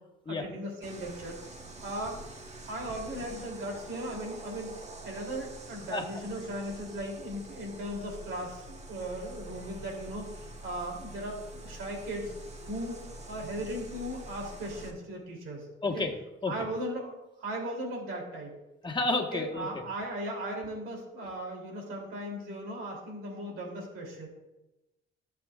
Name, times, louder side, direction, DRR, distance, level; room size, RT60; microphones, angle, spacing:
voice 1, 0.3-1.4 1.8-2.2 2.6-4.7 5.0-10.3 10.6-12.3 12.7-13.0 13.3-15.7 15.9-16.0 16.5-18.6 19.3-24.3, right 1 dB, 90° right, 0 dB, 3.1 m, -37 dB
sound 1, 0.8-14.9, right 2 dB, 35° right, 1.4 m, -46 dB
voice 2, 15.8-16.1 16.4-16.5 18.8-19.7, left 3 dB, 25° left, 1 dB, 1.4 m, -30 dB
16.5 x 6.9 x 2.5 m, 0.99 s
cardioid pair, 90°, 20 cm